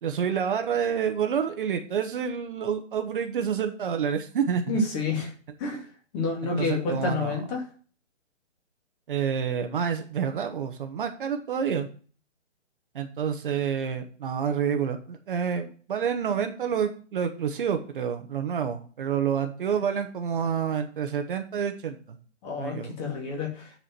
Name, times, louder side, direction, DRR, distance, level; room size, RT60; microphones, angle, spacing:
voice 1, 0.0-4.8 6.6-7.4 9.1-11.9 12.9-22.2 22.6-23.0, right 7 dB, 45° right, 6 dB, 1.2 m, -28 dB
voice 2, 4.7-5.3 5.6-5.8 6.1-7.6 22.4-23.7, left 3 dB, 25° left, 0 dB, 2.4 m, -29 dB
9.7 x 4.9 x 5.9 m, 0.40 s
hypercardioid pair, 150°, 37 cm